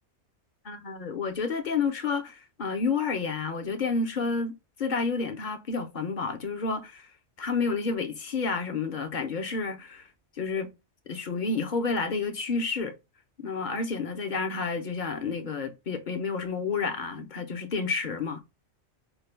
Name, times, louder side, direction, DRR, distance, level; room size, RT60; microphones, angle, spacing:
voice 1, 0.6-4.5 4.8-7.1 7.4-10.1 10.4-10.7 11.1-13.0 13.4-18.4, left 4 dB, 50° left, 0.8 m, -30 dB
4.9 x 2.2 x 3.2 m
omnidirectional pair, 1.2 m